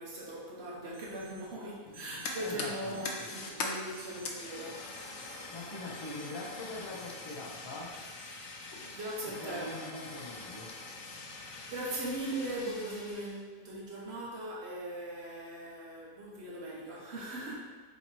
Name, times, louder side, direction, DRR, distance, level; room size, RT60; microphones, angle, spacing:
voice 1, 0.0-4.9 8.9-9.7 11.7-17.6, right 1 dB, 65° right, -4 dB, 1.2 m, -39 dB
Alarm, 0.9-1.4 1.9-2.4 2.9-3.4 3.9-4.4 4.9-5.4 5.9-6.4 6.9-7.4 7.9-8.4, right 2 dB, 85° right, 1.4 m, -55 dB
Fire, 1.9-13.4, left 3 dB, 70° left, 0.9 m, -43 dB
voice 2, 2.4-3.1 5.5-7.9 9.4-10.7, left 2 dB, 30° left, -3 dB, 0.6 m, -42 dB
4.0 x 2.9 x 4.4 m, 1.4 s
omnidirectional pair, 1.2 m